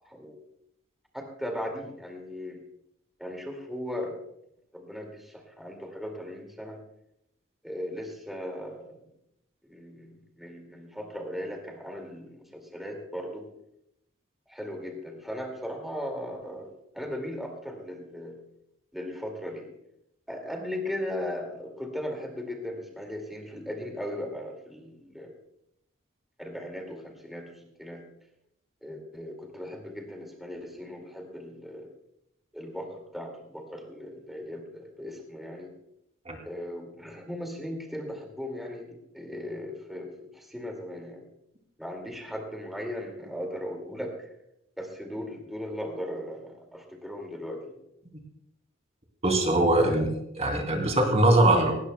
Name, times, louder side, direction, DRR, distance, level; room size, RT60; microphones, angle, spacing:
voice 1, 0.0-0.4 1.1-2.6 3.2-4.2 4.7-6.8 7.6-9.0 9.6-13.4 14.5-16.7 16.9-18.4 18.9-19.7 20.3-25.3 26.4-28.0 28.8-31.9 32.5-35.7 36.4-41.2 41.8-44.3 44.8-47.8, left 1 dB, ahead, 2 dB, 2.2 m, -37 dB
voice 2, 49.2-50.1 50.4-51.7, right 1 dB, 35° right, 3 dB, 2.8 m, -21 dB
18.0 x 17.5 x 2.3 m, 0.79 s
head